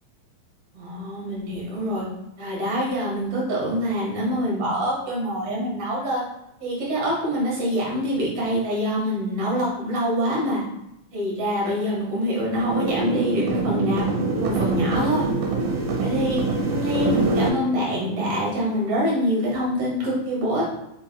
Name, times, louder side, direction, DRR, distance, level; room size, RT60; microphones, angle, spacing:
voice 1, 0.7-2.0 2.4-6.2 6.6-10.6 11.1-14.0 14.3-15.3 16.0-16.4 16.7-20.6, equal, 50° right, -6 dB, 2.2 m, -25 dB
sound 1, 12.5-17.5, right 3 dB, 80° right, 2.5 m, -24 dB
5.9 x 3.9 x 2.3 m, 0.85 s
omnidirectional pair, 4.2 m